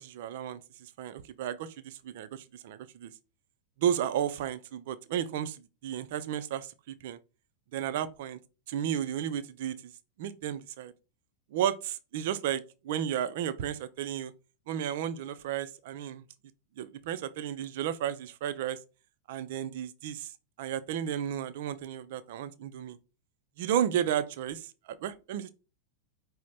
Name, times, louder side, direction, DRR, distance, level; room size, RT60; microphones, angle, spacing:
voice 1, 0.0-3.1 3.8-6.7 7.0-7.2 7.7-8.4 8.7-9.9 10.2-10.9 11.5-14.3 14.7-16.2 16.8-18.8 19.3-20.3 20.6-23.0 23.6-25.5, right 10 dB, 50° right, 0.4 m, -33 dB
5.0 x 2.1 x 4.1 m
figure-of-eight pair, 90°, 0 cm